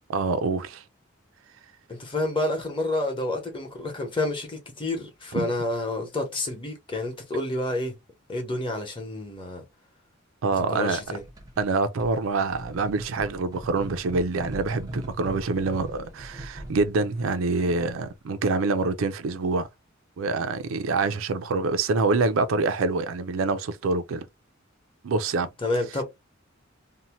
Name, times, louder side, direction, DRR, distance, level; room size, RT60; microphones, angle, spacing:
voice 1, 0.1-0.8 5.3-5.5 10.4-11.0 11.6-19.7 20.2-24.3 25.0-25.5, right 3 dB, 80° right, 0.4 m, -26 dB
voice 2, 1.9-8.0 8.3-9.6 10.7-11.2 25.6-26.0, left 2 dB, 25° left, 0.9 m, -29 dB
sound 1, 11.0-11.7 12.0-18.0, right 1 dB, 20° right, 0.6 m, -40 dB
2.7 x 2.1 x 2.9 m
head